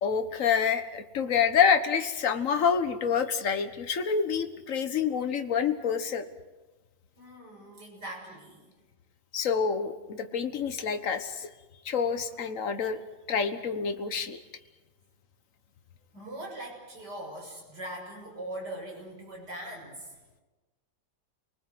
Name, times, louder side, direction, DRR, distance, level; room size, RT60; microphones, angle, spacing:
voice 1, 0.0-6.2 9.3-11.5 11.8-13.0 13.3-14.4, left 6 dB, 45° left, 8 dB, 1.6 m, -27 dB
voice 2, 7.2-8.7 16.1-20.2, right 1 dB, 60° right, -1 dB, 7.2 m, -41 dB
29.0 x 19.5 x 7.9 m, 1.2 s
omnidirectional pair, 2.0 m